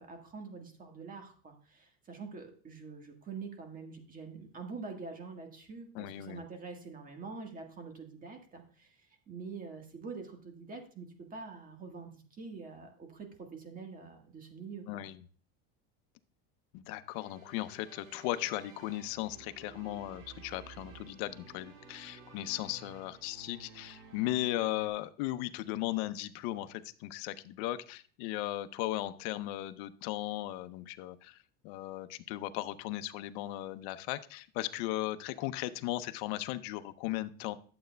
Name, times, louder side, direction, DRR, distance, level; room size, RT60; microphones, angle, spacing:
voice 1, 0.0-15.0, right 4 dB, 25° right, 4 dB, 1.6 m, -45 dB
voice 2, 5.9-6.4 14.9-15.2 16.7-31.4 31.6-37.5, left 15 dB, 75° left, 11 dB, 0.7 m, -37 dB
sound 1, 17.1-24.9, right 4 dB, 65° right, 2.1 m, -53 dB
11.5 x 7.7 x 2.2 m, 0.42 s
cardioid pair, 140°, 32 cm